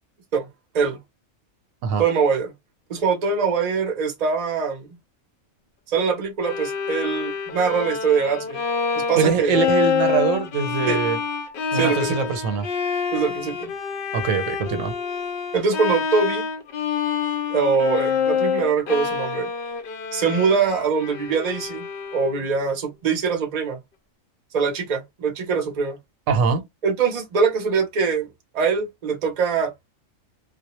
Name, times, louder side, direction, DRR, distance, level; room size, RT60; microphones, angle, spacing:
voice 1, 2.0-2.5 2.9-4.9 5.9-8.6 8.9-9.6 10.9-11.0 11.7-12.3 13.1-13.7 15.5-16.5 17.5-19.5 20.1-23.8 24.5-26.0 26.8-29.7, right 5 dB, 40° right, 0.6 m, -23 dB
Bowed string instrument, 6.4-22.5, left 6 dB, 60° left, 0.6 m, -27 dB
voice 2, 9.2-11.2 11.7-12.7 14.1-14.9 26.3-26.6, right 6 dB, 85° right, 1.0 m, -23 dB
2.3 x 2.1 x 2.9 m
omnidirectional pair, 1.3 m